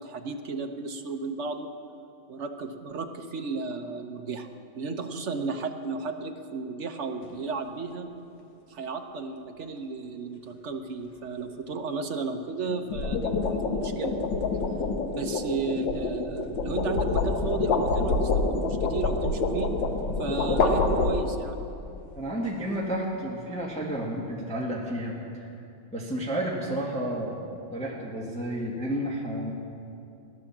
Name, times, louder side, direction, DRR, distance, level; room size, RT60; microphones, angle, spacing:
voice 1, 0.0-1.7 2.3-4.5 4.8-8.1 8.7-14.2 15.1-19.7 20.2-21.6, right 4 dB, 55° right, 5 dB, 0.8 m, -34 dB
sound 1, 7.2-7.5 12.7-21.6, left 3 dB, 70° left, 1.8 m, -27 dB
voice 2, 22.1-25.5 25.9-29.5, right 1 dB, 5° left, -3 dB, 1.5 m, -31 dB
16.5 x 11.0 x 7.2 m, 2.6 s
omnidirectional pair, 2.2 m